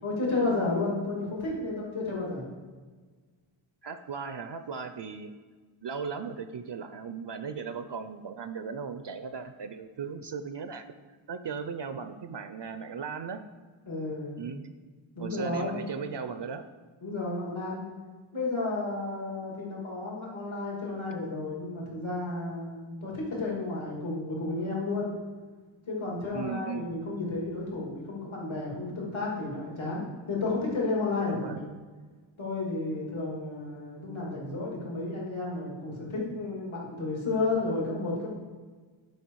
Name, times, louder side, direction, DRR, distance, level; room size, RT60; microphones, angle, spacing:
voice 1, 0.0-2.4 13.9-14.4 15.2-15.8 17.0-17.8 18.3-25.1 25.9-31.5 32.4-38.3, left 3 dB, 70° left, -3 dB, 2.6 m, -32 dB
voice 2, 3.8-5.3 5.8-10.9 11.3-13.4 14.4-14.6 15.2-16.7 26.3-26.9 31.2-31.6, right 6 dB, 60° right, 9 dB, 0.6 m, -37 dB
11.0 x 5.4 x 4.7 m, 1.4 s
wide cardioid pair, 85°, 49 cm